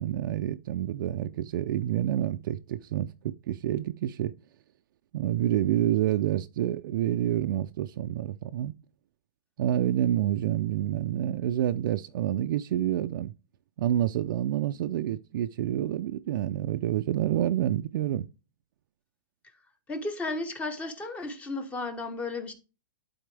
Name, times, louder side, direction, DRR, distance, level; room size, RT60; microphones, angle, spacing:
voice 1, 0.0-4.3 5.1-8.7 9.6-13.3 13.8-18.3, right 12 dB, 70° right, 0.4 m, -28 dB
voice 2, 19.9-22.5, left 2 dB, 10° left, 0.9 m, -34 dB
11.5 x 4.3 x 3.3 m
supercardioid pair, 165°, 12 cm